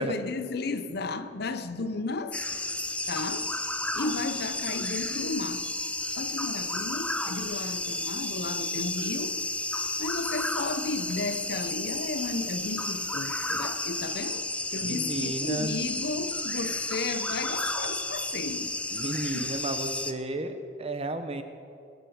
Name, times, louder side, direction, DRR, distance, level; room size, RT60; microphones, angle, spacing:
voice 1, 0.0-2.4 3.1-3.5 3.9-5.7 6.2-9.4 10.0-18.8 19.3-19.5, left 3 dB, 60° left, 0.7 m, -34 dB
sound 1, 2.3-20.1, left 2 dB, 5° left, 0.6 m, -32 dB
voice 2, 14.8-15.8 18.9-21.4, right 2 dB, 35° right, 1.0 m, -33 dB
21.0 x 8.1 x 6.4 m
head